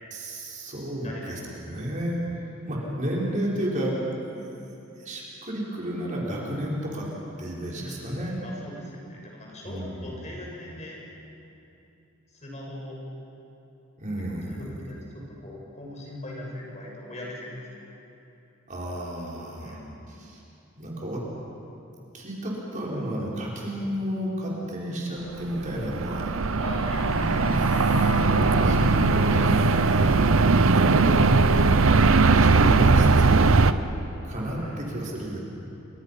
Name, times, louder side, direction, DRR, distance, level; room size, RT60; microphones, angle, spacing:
voice 1, 0.1-4.0 4.2-4.5 5.0-7.1 7.4-8.4 9.6-10.2 14.0-14.7 18.7-19.8 20.1-20.4 20.8-21.2 22.1-26.4 28.6-28.9 29.1-30.1 30.7-31.7 32.4-33.8 34.2-35.4, right 1 dB, 35° right, -5 dB, 5.3 m, -32 dB
voice 2, 1.0-1.5 2.8-2.9 7.7-11.0 12.3-13.0 14.5-17.6 19.6-20.0 26.6-27.5 34.6-35.1, left 1 dB, 35° left, -2 dB, 6.5 m, -40 dB
sound 1, 25.5-33.7, right 3 dB, 70° right, 0.8 m, -19 dB
Bowed string instrument, 26.8-30.6, left 2 dB, 90° left, 5.0 m, -32 dB
29.0 x 26.5 x 5.9 m, 2.8 s
head